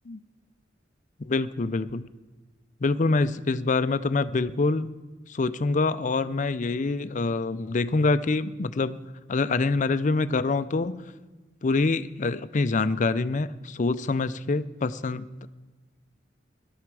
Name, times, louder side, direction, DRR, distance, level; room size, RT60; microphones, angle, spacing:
voice 1, 1.2-2.1 2.8-4.9 5.3-9.0 9.3-11.1 11.6-15.3, left 3 dB, 40° left, 13 dB, 0.5 m, -25 dB
18.0 x 11.5 x 4.7 m, 1.3 s
head